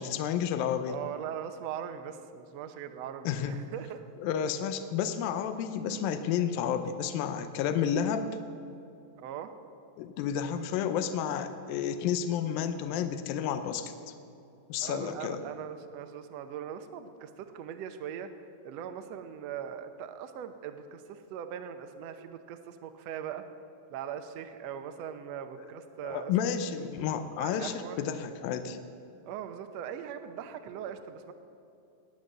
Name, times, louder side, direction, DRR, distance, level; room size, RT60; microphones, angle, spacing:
voice 1, 0.0-1.0 3.3-3.6 4.2-8.4 10.0-13.9 14.7-15.4 26.0-28.8, left 8 dB, 80° left, 9 dB, 2.5 m, -31 dB
voice 2, 0.8-4.0 9.2-9.5 14.8-18.3 18.6-23.4 23.9-26.3 27.4-28.0 29.2-31.3, right 9 dB, 80° right, 8 dB, 1.5 m, -40 dB
20.0 x 8.7 x 6.7 m, 2.7 s
omnidirectional pair, 4.1 m